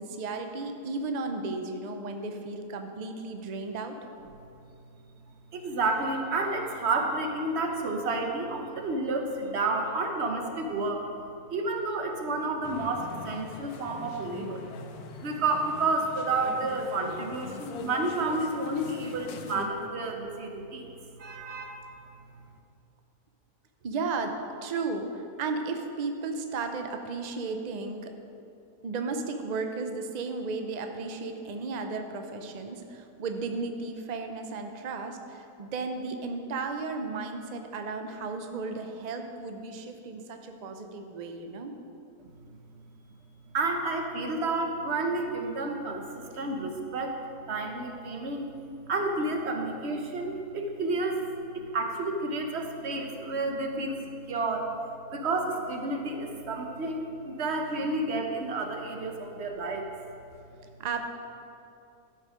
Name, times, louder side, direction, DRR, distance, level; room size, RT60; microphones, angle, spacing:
voice 1, 0.0-4.0 23.8-24.3 24.6-28.1 28.8-41.7 46.3-46.4 59.0-59.1 60.8-61.1, right 3 dB, 90° right, 5 dB, 0.3 m, -34 dB
voice 2, 5.5-11.1 11.5-14.6 15.2-20.9 21.2-21.9 43.5-47.2 47.5-48.5 48.8-51.3 51.5-54.7 55.1-59.9, right 3 dB, 50° right, 4 dB, 1.0 m, -30 dB
sound 1, 12.6-19.7, left 6 dB, 75° left, 1.2 m, -41 dB
12.5 x 5.6 x 5.0 m, 2.7 s
omnidirectional pair, 1.7 m